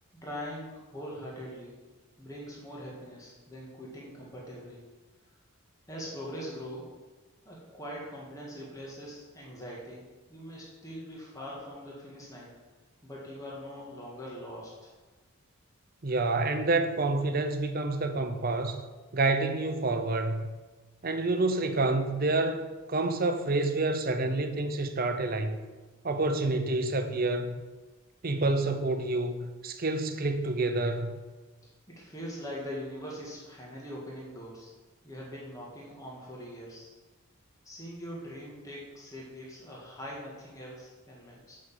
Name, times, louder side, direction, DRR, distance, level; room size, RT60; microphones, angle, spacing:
voice 1, 0.1-1.8 2.2-4.8 5.9-7.0 7.4-10.0 10.3-12.5 13.0-14.9 31.9-34.7 35.0-36.9 37.6-41.6, equal, 15° left, 1.8 m, -42 dB
voice 2, 16.0-18.8 19.1-20.4 21.0-25.6 26.0-27.6 28.2-31.2, right 2 dB, 40° right, 0.7 m, -28 dB
6.5 x 6.2 x 7.4 m
head